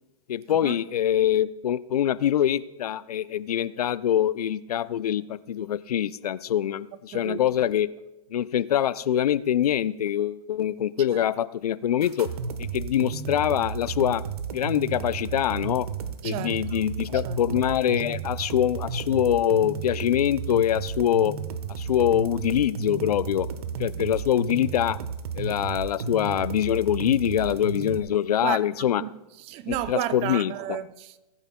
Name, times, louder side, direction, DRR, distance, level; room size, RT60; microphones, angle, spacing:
voice 1, 0.3-7.9 8.3-12.3 12.6-14.2 14.5-15.9 16.2-21.3 21.7-23.5 23.8-25.0 25.4-29.0 29.7-30.8, left 10 dB, 80° left, 0.5 m, -24 dB
voice 2, 7.1-7.6 11.1-11.2 16.2-16.8 17.1-17.6 23.9-24.0 28.4-31.2, right 12 dB, 30° right, 0.5 m, -34 dB
sound 1, 12.0-28.0, right 6 dB, 75° right, 1.1 m, -33 dB
19.0 x 8.9 x 2.2 m
hypercardioid pair, 120°, 20 cm